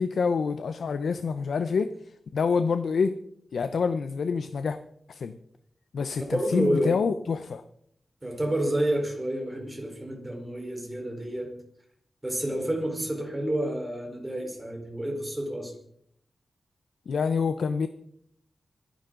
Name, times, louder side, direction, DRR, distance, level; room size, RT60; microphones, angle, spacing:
voice 1, 0.0-1.9 2.3-3.1 3.5-4.8 5.1-5.4 5.9-7.6 17.1-17.9, left 5 dB, 85° left, 10 dB, 0.7 m, -26 dB
voice 2, 6.3-7.0 8.2-11.5 12.2-15.7, right 1 dB, 15° right, 1 dB, 4.4 m, -29 dB
25.5 x 10.5 x 3.9 m, 0.69 s
wide cardioid pair, 120°, 0 cm